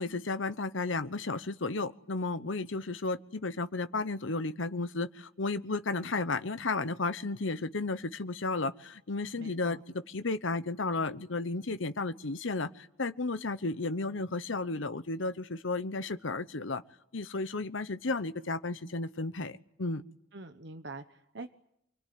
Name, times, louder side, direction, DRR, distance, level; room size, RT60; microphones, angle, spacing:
voice 1, 0.0-16.8 17.1-20.0, left 3 dB, 70° left, 12 dB, 1.0 m, -33 dB
voice 2, 9.4-9.8 20.3-21.5, right 2 dB, 55° right, 9 dB, 1.1 m, -45 dB
28.5 x 21.0 x 9.5 m, 0.76 s
head